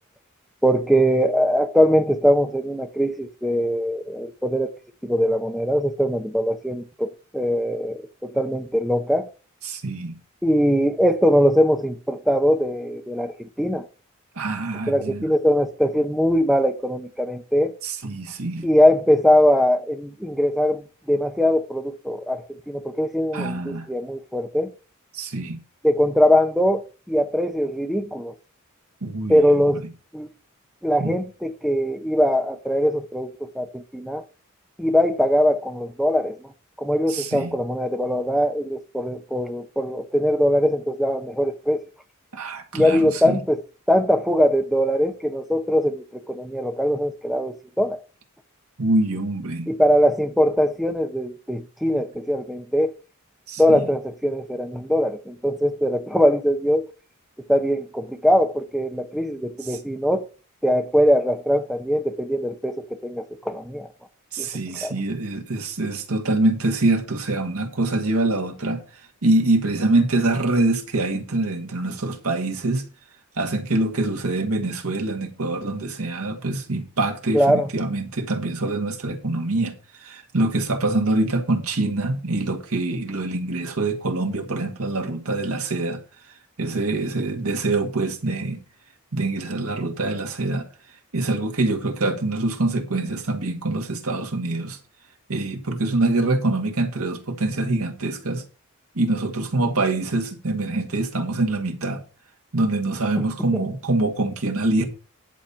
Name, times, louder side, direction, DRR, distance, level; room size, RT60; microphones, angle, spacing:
voice 1, 0.6-4.7 5.0-9.3 10.4-13.8 14.9-17.7 18.6-24.7 25.8-28.3 29.3-29.8 30.1-30.3 30.8-34.2 34.8-36.5 36.8-41.8 42.7-43.6 43.9-48.0 49.7-52.9 53.6-56.9 57.5-60.3 60.6-63.9 64.4-64.5 64.8-64.9 77.3-77.7 103.5-103.6, equal, ahead, 0.9 m, -21 dB
voice 2, 9.6-10.1 14.4-15.3 17.8-18.7 23.3-23.9 25.1-25.6 29.0-29.4 29.7-29.8 31.0-31.2 37.1-37.6 42.3-43.4 48.8-49.7 53.5-53.8 59.6-59.8 64.3-68.8 69.2-72.8 73.4-86.0 86.6-88.6 89.1-90.7 91.1-94.8 95.3-98.4 99.0-102.0 102.5-104.8, right 2 dB, 85° right, 1.9 m, -24 dB
10.5 x 4.2 x 6.9 m
head